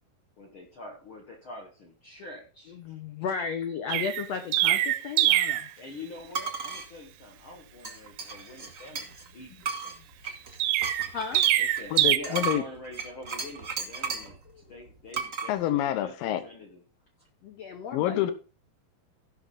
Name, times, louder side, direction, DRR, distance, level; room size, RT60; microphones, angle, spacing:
voice 1, 0.4-3.0 5.8-10.4 11.6-16.8 17.2-17.3, left 2 dB, 55° left, 0 dB, 1.4 m, -45 dB
voice 2, 2.7-5.7 11.1-11.4 14.5-14.6 17.4-18.3, left 6 dB, 90° left, 7 dB, 1.4 m, -34 dB
Chirp tweet, 3.9-5.7 10.6-12.2, right 14 dB, 85° right, 2.6 m, -24 dB
sound 1, 6.3-6.9 7.8-9.3 9.6-14.4 15.1-15.5, right 5 dB, 40° right, 1.2 m, -34 dB
voice 3, 11.9-12.6 15.5-16.4 17.9-18.3, left 12 dB, 75° left, 11 dB, 2.6 m, -27 dB
15.5 x 6.0 x 3.9 m, 0.34 s
omnidirectional pair, 4.4 m